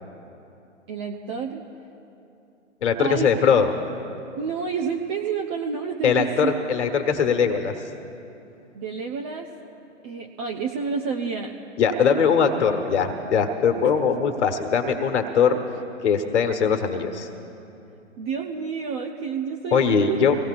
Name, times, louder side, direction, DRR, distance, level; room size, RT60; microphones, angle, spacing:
voice 1, 0.9-1.6 3.0-3.5 4.4-6.8 8.7-9.5 10.0-11.5 18.2-20.2, right 5 dB, 20° right, 2 dB, 0.5 m, -29 dB
voice 2, 2.8-3.7 6.0-7.7 11.8-15.6 16.0-17.3 19.7-20.4, left 6 dB, 65° left, 6 dB, 1.3 m, -21 dB
23.5 x 17.5 x 2.5 m, 2.8 s
figure-of-eight pair, 125°, 38 cm